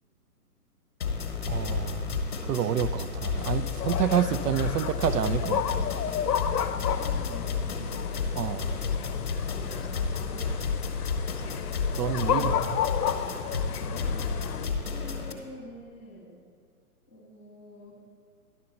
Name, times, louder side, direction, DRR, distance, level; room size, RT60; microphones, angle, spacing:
sound 1, 1.0-15.3, left 5 dB, 40° left, 0.9 m, -31 dB
voice 1, 1.5-5.9 8.4-8.7 12.0-12.8, right 9 dB, 80° right, 15 dB, 0.5 m, -29 dB
sound 2, 3.4-14.7, left 9 dB, 80° left, 0.6 m, -32 dB
voice 2, 6.6-8.1 9.5-10.9 12.3-12.5 13.6-16.4 17.1-18.0, left 1 dB, 15° left, -9 dB, 0.9 m, -46 dB
11.0 x 3.9 x 6.9 m, 2.2 s
hypercardioid pair, 175°, 46 cm